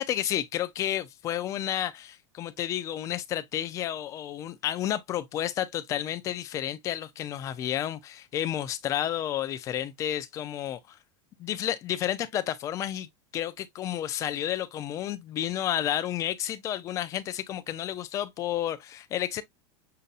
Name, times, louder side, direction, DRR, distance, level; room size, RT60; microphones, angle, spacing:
voice 1, 0.0-11.0 11.4-19.4, left 11 dB, 20° left, 0.3 m, -31 dB
6.5 x 2.7 x 2.3 m
supercardioid pair, 175°, 17 cm